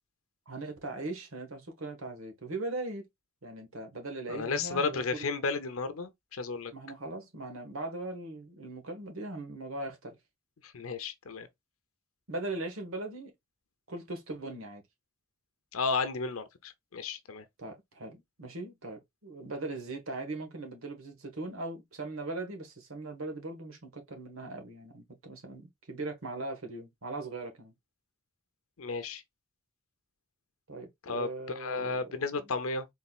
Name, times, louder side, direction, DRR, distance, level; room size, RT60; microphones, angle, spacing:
voice 1, 0.5-3.1 3.4-5.3 6.7-10.2 12.3-13.3 13.9-14.8 17.6-27.7 30.7-32.2, right 2 dB, 80° right, 1.4 m, -39 dB
voice 2, 4.3-6.7 10.6-11.5 15.7-17.5 28.8-29.2 31.0-31.3 31.6-32.9, left 4 dB, 85° left, 0.7 m, -33 dB
4.2 x 3.9 x 2.3 m
head